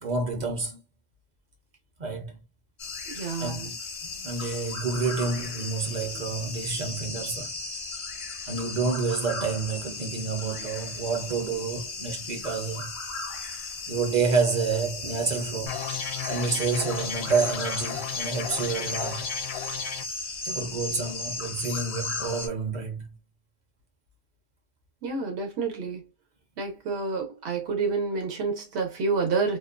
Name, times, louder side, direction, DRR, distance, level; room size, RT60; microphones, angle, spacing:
voice 1, 0.0-0.8 2.0-2.4 3.4-7.5 8.5-13.0 13.9-15.8 16.3-19.3 20.4-23.1, right 4 dB, 50° right, 0.7 m, -29 dB
sound 1, 2.8-22.5, left 3 dB, 45° left, 0.4 m, -36 dB
voice 2, 3.1-3.7 25.0-26.0 26.6-29.6, right 4 dB, 80° right, 1.0 m, -29 dB
sound 2, 15.7-20.1, left 7 dB, 75° left, 0.8 m, -34 dB
2.5 x 2.1 x 2.3 m
omnidirectional pair, 1.1 m